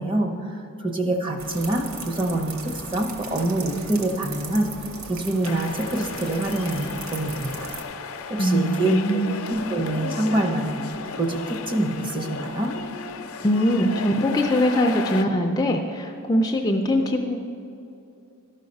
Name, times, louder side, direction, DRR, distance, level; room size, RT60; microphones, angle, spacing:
voice 1, 0.0-4.7 5.1-7.7 8.3-10.8 11.1-12.7, right 1 dB, 25° right, 3 dB, 0.7 m, -26 dB
sound 1, 1.4-7.8, right 3 dB, 70° right, 0.8 m, -37 dB
sound 2, 5.4-15.2, left 4 dB, 75° left, 0.6 m, -35 dB
voice 2, 8.4-9.3 13.4-17.4, equal, 15° left, 3 dB, 0.4 m, -22 dB
12.5 x 5.6 x 5.3 m, 2.7 s
head